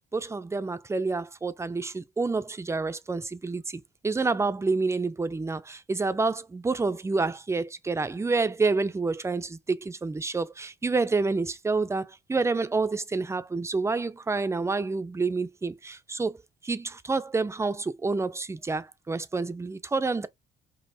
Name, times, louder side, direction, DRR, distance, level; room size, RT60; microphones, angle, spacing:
voice 1, 0.1-20.3, right 3 dB, 15° right, 0.4 m, -28 dB
5.2 x 2.0 x 2.7 m
cardioid pair, 90°, 20 cm